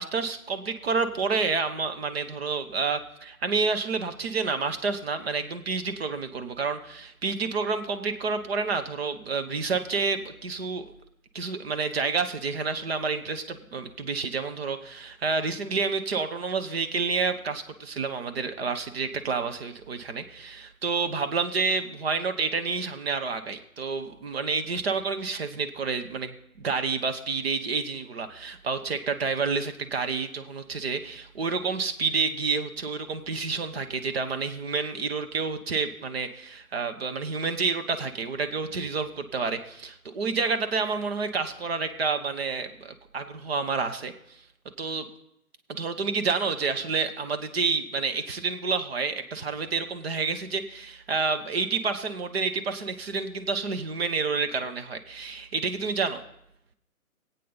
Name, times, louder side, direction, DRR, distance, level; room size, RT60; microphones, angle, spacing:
voice 1, 0.0-10.9 11.3-44.1 44.8-45.1 45.7-56.2, right 4 dB, 45° right, 8 dB, 1.1 m, -29 dB
21.5 x 8.5 x 3.9 m, 0.80 s
hypercardioid pair, 150°, 43 cm